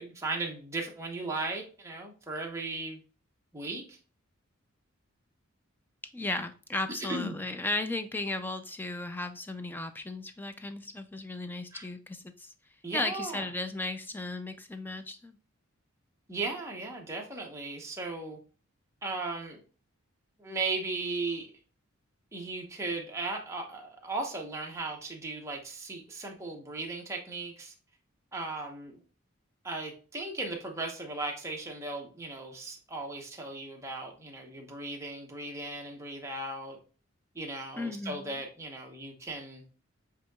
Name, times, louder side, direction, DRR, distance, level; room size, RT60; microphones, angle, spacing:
voice 1, 0.0-3.0 3.5-4.0 7.1-7.4 11.7-11.9 12.8-13.5 16.3-18.4 19.0-19.6 20.4-21.5 22.3-27.7 28.3-29.0 29.6-36.8 37.3-39.6, right 3 dB, 15° right, 0 dB, 0.8 m, -37 dB
voice 2, 6.1-12.5 12.9-15.4 37.8-38.4, left 2 dB, 10° left, 9 dB, 0.3 m, -35 dB
7.9 x 2.8 x 2.3 m, 0.39 s
head